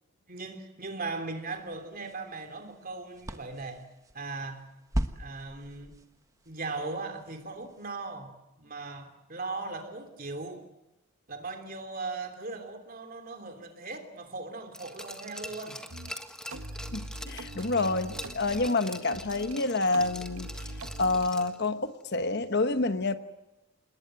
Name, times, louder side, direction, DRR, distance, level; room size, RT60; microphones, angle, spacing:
voice 1, 0.3-3.9 4.1-4.6 5.1-5.9 6.4-10.7 11.3-15.8, right 3 dB, 40° right, 7 dB, 3.2 m, -38 dB
sound 1, 1.4-8.0, equal, 15° right, 1.2 m, -40 dB
Glass, 14.7-21.7 22.0-22.1, left 1 dB, 5° left, 1.6 m, -44 dB
sound 2, 15.9-16.1 16.5-19.6 19.9-21.3, right 2 dB, 80° right, 1.7 m, -42 dB
voice 2, 16.9-20.5 21.0-23.1, left 3 dB, 50° left, 10 dB, 1.2 m, -28 dB
27.5 x 21.0 x 7.8 m, 0.97 s
head